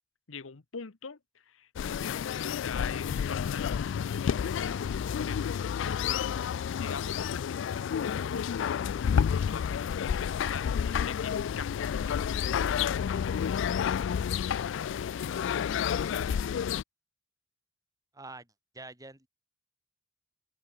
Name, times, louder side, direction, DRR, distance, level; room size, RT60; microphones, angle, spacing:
voice 1, 0.3-1.2 1.5-6.2 6.8-8.8 9.1-10.7 11.1-15.1, left 5 dB, 85° left, 1.0 m, -44 dB
sound 1, 1.8-16.8, left 8 dB, 65° left, 0.3 m, -30 dB
voice 2, 18.1-18.5 18.7-19.3, right 2 dB, 20° right, 5.9 m, -45 dB
open air
head